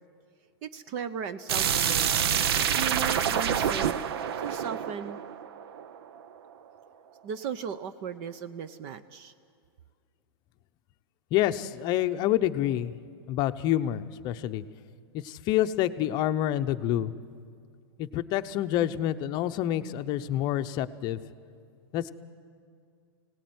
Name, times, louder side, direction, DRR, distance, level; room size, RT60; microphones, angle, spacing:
voice 1, 0.6-2.2 2.8-4.0 4.4-5.2 7.2-9.3, right 7 dB, 40° right, 13 dB, 0.8 m, -36 dB
sound 1, 1.5-6.2, right 8 dB, 75° right, 0.9 m, -27 dB
voice 2, 11.3-12.9 13.3-14.6 15.1-17.1 18.0-21.2 21.9-22.1, left 12 dB, 35° left, 10 dB, 0.7 m, -27 dB
25.0 x 18.0 x 9.4 m, 2.2 s
supercardioid pair, 155°, 13 cm